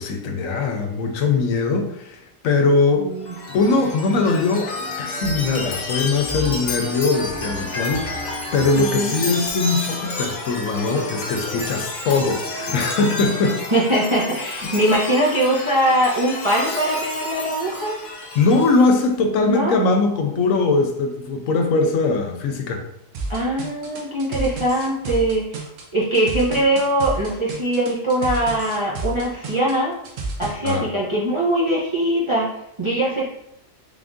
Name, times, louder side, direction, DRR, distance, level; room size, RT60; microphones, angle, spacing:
voice 1, 0.0-3.1 3.5-13.6 18.3-22.8 30.6-30.9, left 3 dB, 80° left, 4 dB, 1.0 m, -21 dB
voice 2, 3.0-3.3 8.8-9.2 13.7-18.0 19.5-19.8 23.3-25.6 25.9-29.9 30.4-32.5 32.8-33.3, right 1 dB, 30° right, -6 dB, 0.6 m, -21 dB
Chime, 3.2-19.1, left 2 dB, 45° left, 0.7 m, -30 dB
sound 1, 23.1-30.8, right 3 dB, 75° right, 1.1 m, -30 dB
3.6 x 2.6 x 3.6 m, 0.80 s
omnidirectional pair, 1.4 m